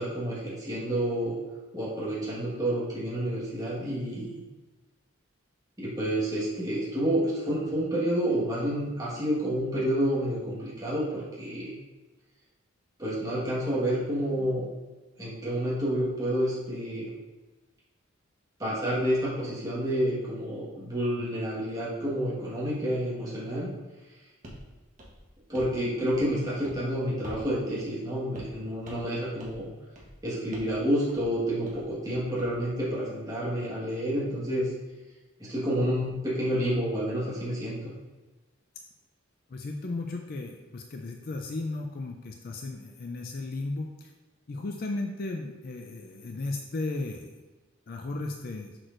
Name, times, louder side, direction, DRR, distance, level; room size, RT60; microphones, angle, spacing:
voice 1, 0.0-1.4 1.7-4.3 5.8-11.7 13.0-14.6 15.2-17.1 18.6-23.7 25.5-29.7 30.2-34.7 35.4-37.9, equal, 15° right, -9 dB, 1.5 m, -29 dB
sound 1, 24.4-24.6 25.0-25.8 26.1-26.4 26.6-26.8 27.2-27.5 27.8-27.9 28.3-28.6 28.8-29.1 29.4-29.6 29.9-30.2 30.5-30.8 31.1-31.3 31.6-32.5, equal, 40° right, 1.2 m, -46 dB
voice 2, 39.5-44.1 44.5-47.4 47.9-48.7, left 2 dB, 45° left, 3 dB, 0.4 m, -35 dB
6.3 x 6.0 x 2.6 m, 1.2 s
head